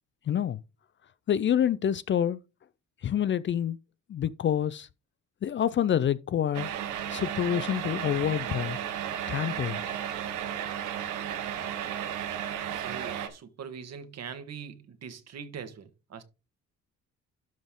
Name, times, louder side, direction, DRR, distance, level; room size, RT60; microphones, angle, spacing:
voice 1, 0.3-0.6 1.3-2.4 3.0-3.8 4.1-4.9 5.4-6.7 7.1-8.8 9.3-9.8, left 9 dB, 40° left, 0.4 m, -27 dB
sound 1, 6.5-13.3, right 10 dB, 90° right, 1.2 m, -34 dB
voice 2, 12.8-16.2, right 7 dB, 60° right, 1.5 m, -42 dB
12.0 x 4.1 x 3.7 m
cardioid pair, 90°, 30 cm